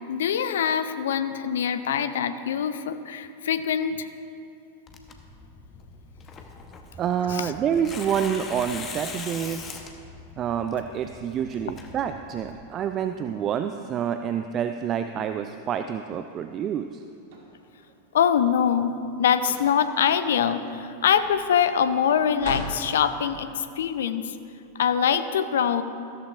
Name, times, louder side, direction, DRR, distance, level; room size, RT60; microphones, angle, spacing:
voice 1, 0.1-4.1 7.3-7.5 18.1-18.9 19.2-24.4 24.8-25.8, left 8 dB, 60° left, 11 dB, 0.5 m, -24 dB
Tearing, 4.9-12.6, left 4 dB, 25° left, 1.0 m, -41 dB
voice 2, 7.0-9.7 10.4-17.0, right 8 dB, 30° right, 8 dB, 0.3 m, -28 dB
sound 1, 16.9-18.1 19.3-20.0 20.3-22.8, right 1 dB, 50° right, 1.9 m, -39 dB
14.5 x 13.5 x 2.5 m, 2.5 s
figure-of-eight pair, 90°, 0 cm